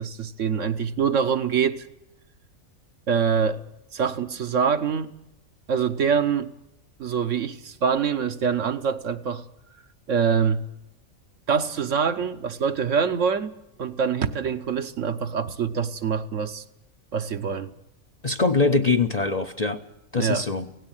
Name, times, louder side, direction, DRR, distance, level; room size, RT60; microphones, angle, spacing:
voice 1, 0.0-1.9 3.1-3.6 3.9-5.1 5.7-6.5 7.0-9.5 10.1-10.6 11.5-16.6 17.1-17.7 20.2-20.5, right 6 dB, 60° right, 1.2 m, -25 dB
voice 2, 18.2-19.8 20.1-20.7, left 3 dB, 35° left, 0.8 m, -23 dB
17.0 x 17.0 x 9.0 m
omnidirectional pair, 1.5 m